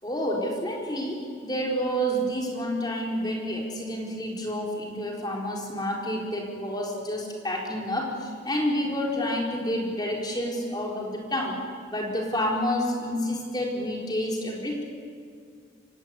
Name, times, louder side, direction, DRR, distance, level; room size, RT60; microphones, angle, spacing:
voice 1, 0.0-11.6 11.9-14.8, equal, 20° left, -1 dB, 4.2 m, -29 dB
25.0 x 17.0 x 9.6 m, 2.4 s
head